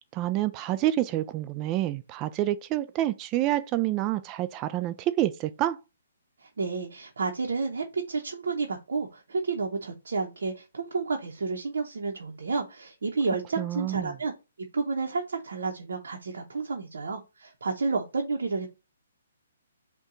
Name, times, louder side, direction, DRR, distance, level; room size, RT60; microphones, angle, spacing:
voice 1, 0.1-5.8 13.6-14.2, right 14 dB, 25° right, 0.3 m, -28 dB
voice 2, 6.4-14.3 14.7-18.7, right 4 dB, 70° right, 0.7 m, -31 dB
5.3 x 2.3 x 3.7 m
hypercardioid pair, 140°, 0 cm